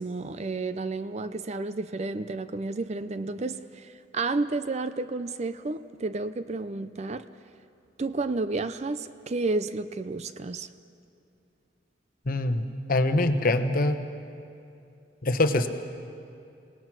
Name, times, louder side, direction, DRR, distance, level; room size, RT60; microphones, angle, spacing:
voice 1, 0.0-7.3 8.0-10.7, right 3 dB, 35° right, 0.5 m, -31 dB
voice 2, 12.3-12.6 12.9-14.0 15.2-15.7, left 2 dB, 45° left, 1.1 m, -23 dB
27.5 x 18.0 x 6.1 m
head